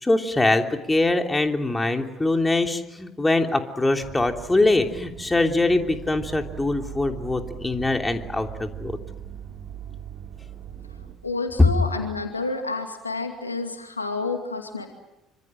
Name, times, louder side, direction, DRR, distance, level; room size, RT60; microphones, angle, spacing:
voice 1, 0.0-9.0 11.6-11.7, left 2 dB, 15° left, 4 dB, 3.1 m, -22 dB
sound 1, 4.0-11.1, right 9 dB, 50° right, 5.4 m, -39 dB
voice 2, 11.2-14.9, left 3 dB, 85° left, 5 dB, 2.5 m, -29 dB
27.0 x 25.5 x 7.7 m, 0.93 s
figure-of-eight pair, 55°, 0 cm